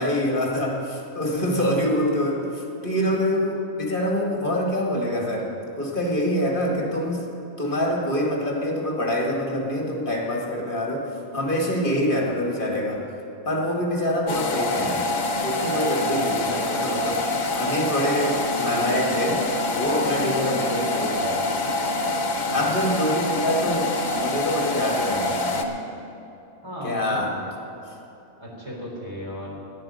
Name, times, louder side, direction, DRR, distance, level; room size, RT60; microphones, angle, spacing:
voice 1, 0.0-7.2 7.6-13.1 13.5-15.1 15.4-19.4 19.7-21.4 22.5-25.6 26.8-27.4, equal, 40° left, -1 dB, 2.0 m, -25 dB
voice 2, 1.4-1.8 22.5-22.7 26.6-27.2 28.4-29.7, equal, 20° right, -4 dB, 3.6 m, -35 dB
sound 1, 14.3-25.6, left 2 dB, 70° left, 1.6 m, -26 dB
14.5 x 11.0 x 6.3 m, 2.9 s
omnidirectional pair, 1.4 m